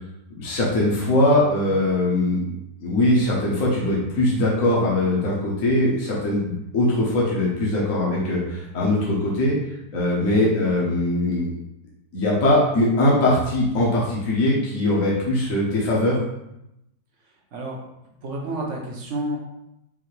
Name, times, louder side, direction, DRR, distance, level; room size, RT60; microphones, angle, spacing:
voice 1, 0.4-2.4 2.8-9.6 9.9-11.5 12.1-16.2, left 1 dB, 55° left, -5 dB, 1.3 m, -21 dB
voice 2, 17.2-19.4, right 1 dB, 60° right, 0 dB, 0.9 m, -31 dB
5.6 x 2.6 x 3.2 m, 0.86 s
omnidirectional pair, 1.8 m